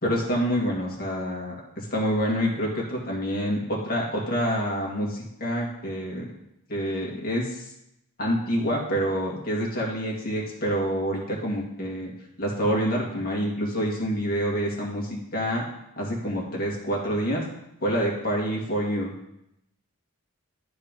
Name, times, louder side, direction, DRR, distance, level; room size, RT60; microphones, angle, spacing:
voice 1, 0.0-6.3 6.7-7.6 8.2-12.1 12.4-15.6 16.0-17.4 17.8-19.1, equal, 40° left, -2 dB, 2.1 m, -27 dB
10.5 x 4.6 x 5.3 m, 0.82 s
head